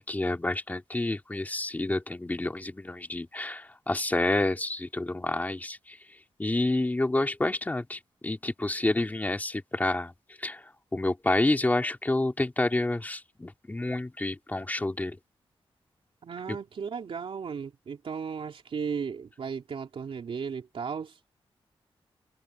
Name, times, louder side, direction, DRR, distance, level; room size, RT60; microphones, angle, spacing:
voice 1, 0.0-6.0 6.4-10.1 10.4-10.6 10.9-15.2 16.5-16.6, left 2 dB, 15° left, 2.8 m, -29 dB
voice 2, 16.2-21.3, right 6 dB, 65° right, 3.3 m, -35 dB
wide cardioid pair, 145°, 10 cm